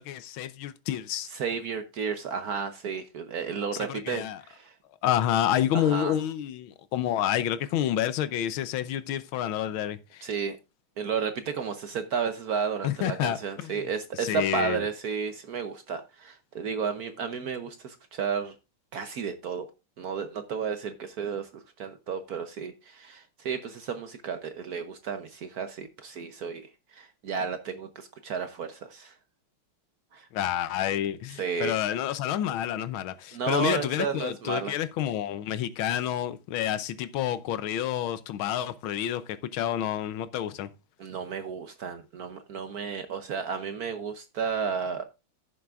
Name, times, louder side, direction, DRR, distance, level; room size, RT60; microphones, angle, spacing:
voice 1, 0.0-1.3 3.7-4.4 5.0-10.3 12.8-13.7 14.1-14.8 30.3-40.7, left 11 dB, 80° left, 1.5 m, -29 dB
voice 2, 1.3-4.7 5.7-6.1 10.2-10.6 11.0-18.5 18.9-19.7 20.0-29.2 30.1-30.3 31.4-31.7 33.3-34.7 41.0-45.0, right 6 dB, 60° right, 1.0 m, -32 dB
15.0 x 7.0 x 2.5 m
omnidirectional pair, 2.3 m